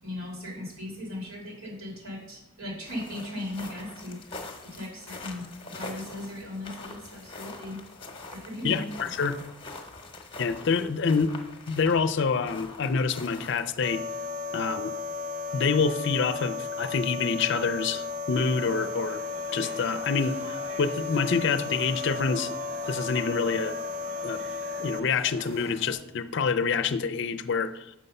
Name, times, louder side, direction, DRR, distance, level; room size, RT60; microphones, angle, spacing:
voice 1, 0.0-7.8 8.3-8.8, left 1 dB, 85° right, -2 dB, 3.1 m, -38 dB
sound 1, 2.8-13.8, left 3 dB, 25° left, 0.9 m, -44 dB
voice 2, 8.6-9.4 10.4-11.3 11.7-14.0 14.5-14.9 15.5-19.2 19.5-22.5 22.9-23.8 24.2-24.4 24.8-27.9, left 5 dB, 55° left, 12 dB, 0.4 m, -27 dB
sound 2, 13.8-25.0, left 4 dB, 45° right, 0.5 m, -34 dB
sound 3, 18.3-25.9, right 2 dB, 70° right, 2.2 m, -45 dB
6.6 x 6.3 x 5.4 m, 0.89 s
head